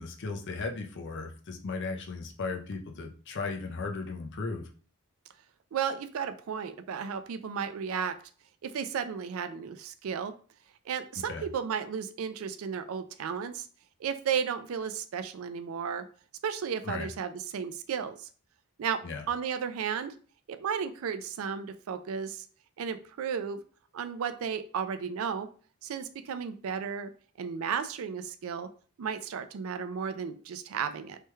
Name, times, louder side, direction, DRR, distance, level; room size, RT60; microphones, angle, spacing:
voice 1, 0.0-4.7 11.2-11.4 16.8-17.1 19.0-19.2, left 4 dB, 55° left, 3 dB, 0.5 m, -36 dB
voice 2, 5.7-8.1 8.6-10.3 10.9-13.7 14.0-16.0 16.4-18.3 18.8-19.0 19.3-20.1 20.5-22.4 22.8-23.6 23.9-25.5 25.8-27.1 27.4-28.7 29.0-31.2, right 7 dB, 70° right, 10 dB, 0.4 m, -34 dB
3.3 x 2.2 x 3.0 m, 0.42 s
head